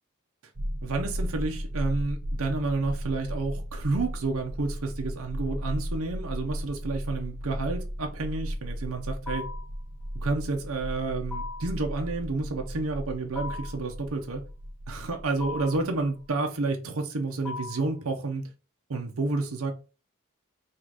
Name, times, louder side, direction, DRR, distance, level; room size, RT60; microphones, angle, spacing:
sound 1, 0.6-16.3, equal, 40° right, 0.6 m, -35 dB
voice 1, 0.8-9.5 10.1-14.4 14.9-18.5 18.9-19.7, right 3 dB, 75° right, 0.7 m, -30 dB
sound 2, 9.3-9.7 11.3-11.8 13.4-13.8 15.4-15.9 17.4-17.9, left 4 dB, 10° left, 0.5 m, -38 dB
3.8 x 2.4 x 4.6 m
head